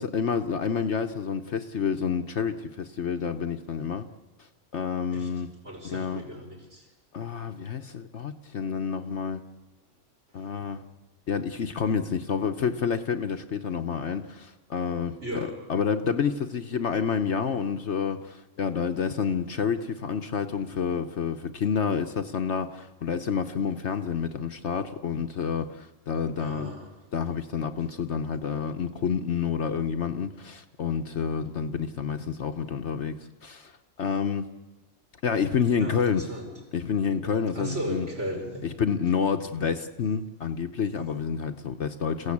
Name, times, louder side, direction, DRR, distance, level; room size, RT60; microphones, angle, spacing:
voice 1, 0.0-4.1 4.7-5.5 5.8-6.2 7.1-9.4 10.3-10.9 11.3-15.2 15.7-26.7 27.1-33.2 33.4-33.7 34.0-34.5 35.2-36.2 36.7-38.1 38.8-42.3, left 6 dB, 55° left, 7 dB, 1.2 m, -29 dB
voice 2, 5.6-6.9 10.6-10.7 15.2-15.6 26.4-27.0 35.8-36.6 37.5-38.7, equal, 55° right, -1 dB, 5.9 m, -36 dB
28.0 x 16.0 x 8.6 m, 1.2 s
omnidirectional pair, 1.5 m